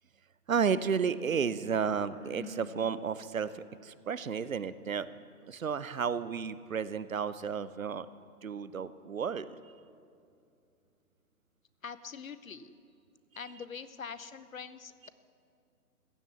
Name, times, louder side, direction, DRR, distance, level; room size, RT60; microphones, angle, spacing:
voice 1, 0.5-5.1 5.5-8.1 8.4-9.5 15.0-15.1, right 6 dB, 60° right, 16 dB, 0.7 m, -32 dB
Sigh, 2.0-2.7, left 2 dB, 10° left, 2.8 m, -45 dB
voice 2, 11.8-12.7 13.4-15.1, left 6 dB, 60° left, 14 dB, 0.9 m, -44 dB
15.0 x 10.5 x 8.5 m, 2.5 s
figure-of-eight pair, 135°, 47 cm